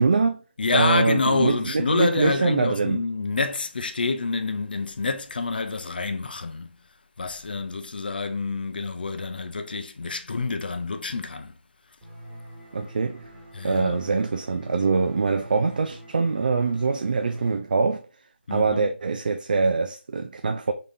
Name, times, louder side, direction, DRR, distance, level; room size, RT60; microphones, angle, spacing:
voice 1, 0.0-0.4 0.7-3.0 12.7-13.3 13.6-18.0 18.5-20.7, right 4 dB, 50° right, 0.4 m, -23 dB
voice 2, 0.6-6.7 7.2-11.5 13.5-14.0 18.5-18.9, left 4 dB, 55° left, 0.6 m, -27 dB
sound 1, 12.0-17.6, right 1 dB, 10° right, 1.4 m, -44 dB
3.8 x 3.6 x 2.6 m
figure-of-eight pair, 160°, 6 cm